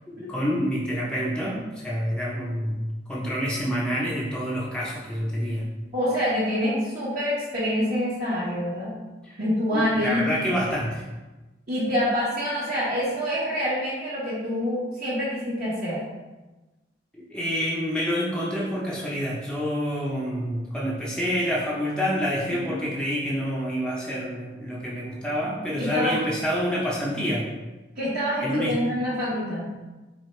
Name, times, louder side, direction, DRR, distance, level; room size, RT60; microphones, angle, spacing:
voice 1, 0.1-5.7 9.2-9.4 9.7-11.0 17.1-27.5 28.4-28.8, equal, 5° left, -6 dB, 0.7 m, -27 dB
voice 2, 5.9-8.9 9.4-10.4 11.7-16.0 22.7-22.8 25.8-26.2 28.0-29.7, equal, 45° right, -12 dB, 1.3 m, -26 dB
4.7 x 3.4 x 3.2 m, 1.1 s
head